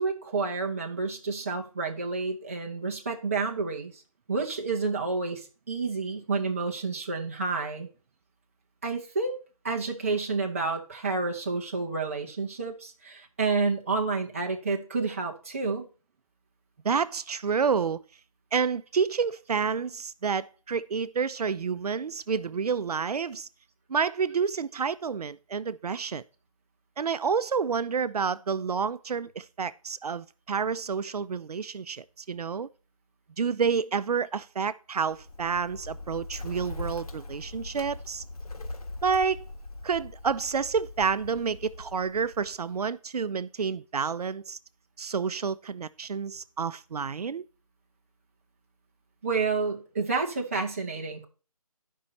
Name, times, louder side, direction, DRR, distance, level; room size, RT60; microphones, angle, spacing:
voice 1, 0.0-4.0 4.3-7.9 8.8-9.4 9.6-15.8 49.2-51.2, right 4 dB, 20° right, 1.0 m, -29 dB
voice 2, 16.8-18.0 18.5-23.5 23.9-26.2 27.0-32.7 33.4-38.2 39.0-39.4 39.8-44.6 45.0-47.4, right 6 dB, 85° right, 0.5 m, -29 dB
Bird, 35.0-42.8, left 2 dB, 75° left, 1.5 m, -41 dB
13.0 x 5.4 x 4.1 m
hypercardioid pair, 175°, 19 cm